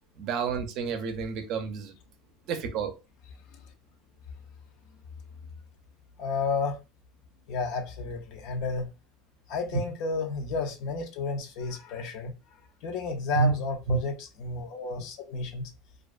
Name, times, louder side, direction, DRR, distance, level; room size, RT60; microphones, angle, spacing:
voice 1, 0.2-1.9 2.5-2.9 9.7-9.8 13.3-13.6 13.9-14.0, right 5 dB, 50° right, 0.5 m, -29 dB
voice 2, 6.2-6.8 7.5-8.9 9.5-12.3 12.8-15.7, left 4 dB, 60° left, 0.5 m, -32 dB
2.4 x 2.2 x 2.4 m
supercardioid pair, 140°, 0 cm